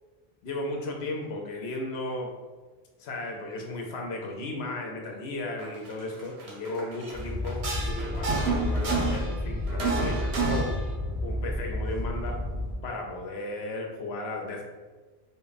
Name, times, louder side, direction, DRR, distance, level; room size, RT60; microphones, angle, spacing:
voice 1, 0.4-2.3 3.0-10.7 11.2-12.4 12.8-14.6, left 2 dB, 75° left, 1 dB, 0.9 m, -35 dB
sound 1, 5.6-5.9 6.2-7.2 7.4-9.4 9.7-10.8, right 3 dB, 90° right, 1.0 m, -29 dB
sound 2, 7.1-12.8, left 1 dB, 35° left, 0.8 m, -31 dB
3.8 x 2.2 x 4.0 m, 1.3 s
omnidirectional pair, 1.1 m